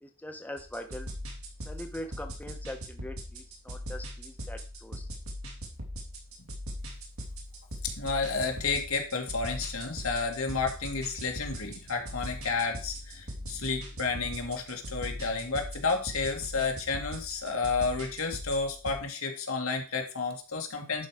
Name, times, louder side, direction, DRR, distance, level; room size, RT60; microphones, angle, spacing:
voice 1, 0.0-1.1 1.7-5.1, left 1 dB, 5° left, 4 dB, 1.0 m, -42 dB
sound 1, 0.6-19.0, equal, 80° right, 3.0 m, -41 dB
voice 2, 7.8-21.1, left 4 dB, 80° left, 3 dB, 2.0 m, -31 dB
11.0 x 4.7 x 4.9 m, 0.35 s
head